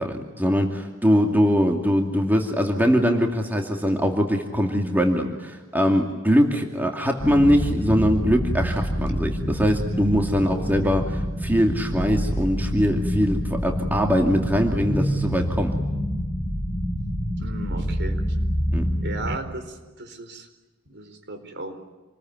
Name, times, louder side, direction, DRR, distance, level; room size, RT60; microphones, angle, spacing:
voice 1, 0.0-11.1 11.4-15.7 18.7-18.9, equal, 10° right, 2 dB, 2.5 m, -22 dB
sound 1, 7.2-19.4, equal, 25° left, 6.9 m, -26 dB
voice 2, 17.4-18.2 19.0-20.5 20.9-21.8, right 2 dB, 55° right, 7 dB, 4.3 m, -35 dB
28.0 x 21.5 x 9.5 m, 1.2 s
head